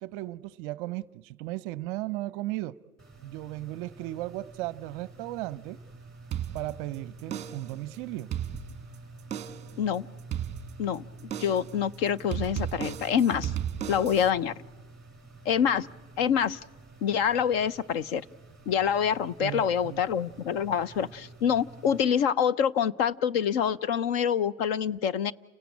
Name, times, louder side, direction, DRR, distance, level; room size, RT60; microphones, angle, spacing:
voice 1, 0.0-2.8 3.2-5.8 6.5-8.3 19.4-20.0, right 17 dB, 40° right, 0.7 m, -36 dB
sound 1, 3.0-22.0, right 3 dB, ahead, 5.2 m, -49 dB
sound 2, 6.3-6.9 7.3-7.8 8.2-8.9 9.3-9.8 10.3-10.9 11.3-11.8 12.3-14.3, right 10 dB, 15° right, 1.6 m, -35 dB
voice 2, 11.4-13.5 13.9-14.5 15.5-15.9 16.2-16.6 17.0-18.2 18.7-25.3, left 8 dB, 45° left, 0.8 m, -26 dB
30.0 x 17.0 x 8.5 m
hypercardioid pair, 130°, 41 cm